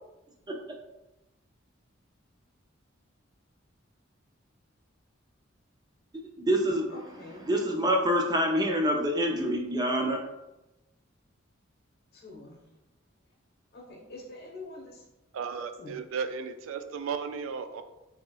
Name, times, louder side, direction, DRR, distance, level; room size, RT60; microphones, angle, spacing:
voice 1, 6.1-6.9 7.5-10.2, equal, 20° right, 2 dB, 0.4 m, -26 dB
voice 2, 6.9-7.5 12.1-12.7 13.7-15.0 15.8-16.0, left 2 dB, 55° left, -2 dB, 1.2 m, -45 dB
voice 3, 15.3-17.8, right 6 dB, 90° right, 9 dB, 0.3 m, -35 dB
4.7 x 3.0 x 2.3 m, 0.98 s
head